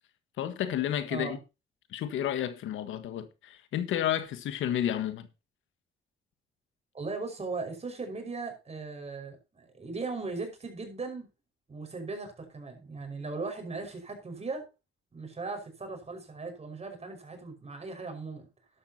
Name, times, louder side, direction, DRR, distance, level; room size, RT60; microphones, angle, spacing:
voice 1, 0.4-1.4 1.9-5.3, left 10 dB, 80° left, 1.6 m, -31 dB
voice 2, 6.9-11.3 11.7-14.7 15.1-18.5, right 3 dB, 30° right, 5.6 m, -38 dB
12.0 x 12.0 x 2.9 m
cardioid pair, 90°, 20 cm